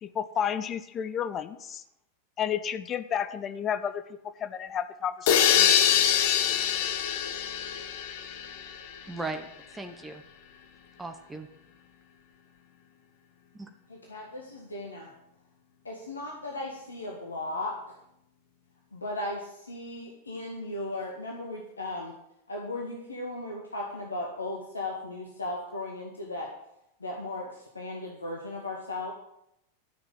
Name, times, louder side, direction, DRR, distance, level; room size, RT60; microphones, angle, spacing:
voice 1, 0.0-1.8 2.4-6.0, left 8 dB, 25° left, 11 dB, 0.8 m, -32 dB
sound 1, 5.3-9.0, left 9 dB, 50° left, 1.1 m, -24 dB
voice 2, 9.1-9.5 9.7-10.2 11.0-11.5 13.5-13.7, right 3 dB, 10° right, 5 dB, 1.1 m, -37 dB
voice 3, 13.9-15.1 15.8-18.0 18.9-22.1 22.5-26.5 27.0-29.1, left 2 dB, 75° left, 0 dB, 1.9 m, -36 dB
13.0 x 6.6 x 7.8 m, 0.80 s
figure-of-eight pair, 90°, 0 cm